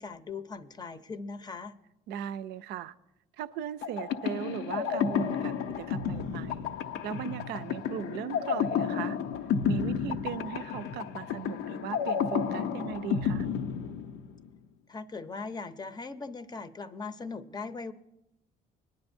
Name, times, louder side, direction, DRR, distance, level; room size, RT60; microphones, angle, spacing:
voice 1, 0.0-1.8 14.9-17.9, left 4 dB, 25° left, 10 dB, 0.6 m, -39 dB
voice 2, 2.1-2.9 3.4-6.7 7.0-9.2 9.7-13.5, right 9 dB, 80° right, 13 dB, 0.5 m, -38 dB
sound 1, 3.8-14.5, left 7 dB, 90° left, 0.7 m, -31 dB
20.5 x 10.5 x 2.6 m, 0.89 s
cardioid pair, 110°, 17 cm